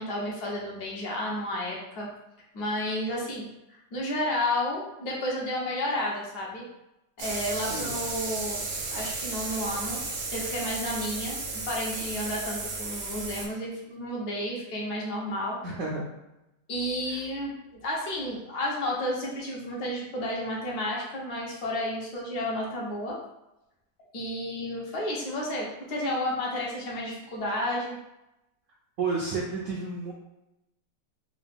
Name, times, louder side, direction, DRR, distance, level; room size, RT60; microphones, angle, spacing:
voice 1, 0.0-2.1 2.5-6.6 7.2-8.6 8.9-10.0 10.3-11.4 11.7-15.6 16.7-23.2 24.1-28.0, left 1 dB, 65° left, -3 dB, 1.4 m, -31 dB
sound 1, 7.2-13.5, right 3 dB, 90° right, 1.4 m, -34 dB
voice 2, 15.6-16.0 17.1-17.2 29.0-30.1, right 4 dB, 70° right, -4 dB, 0.7 m, -31 dB
3.8 x 2.4 x 3.4 m, 0.92 s
omnidirectional pair, 1.9 m